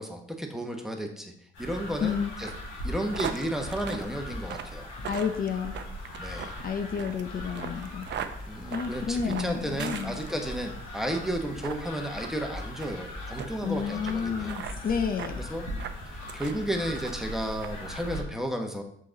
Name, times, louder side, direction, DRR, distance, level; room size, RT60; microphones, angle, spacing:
voice 1, 0.0-1.3 1.6-2.5 2.8-4.9 6.2-6.6 8.5-14.6 15.4-15.7 16.3-18.8, right 1 dB, ahead, 3 dB, 1.2 m, -33 dB
sound 1, 1.5-18.2, left 1 dB, 85° left, 2.4 m, -40 dB
sound 2, 2.4-10.6 11.0-11.3 11.6-11.8 12.2-12.3 12.8-13.0 13.4-13.5 14.1-14.2 14.4-14.8 15.2-15.4 15.8-16.6 16.9-17.3 17.6-17.7, right 8 dB, 60° right, 0.6 m, -39 dB
voice 2, 5.1-5.8 6.6-8.1 8.7-10.2 13.6-15.4, left 6 dB, 45° left, 6 dB, 0.7 m, -30 dB
6.7 x 5.0 x 3.9 m, 0.67 s
cardioid pair, 90°, 20 cm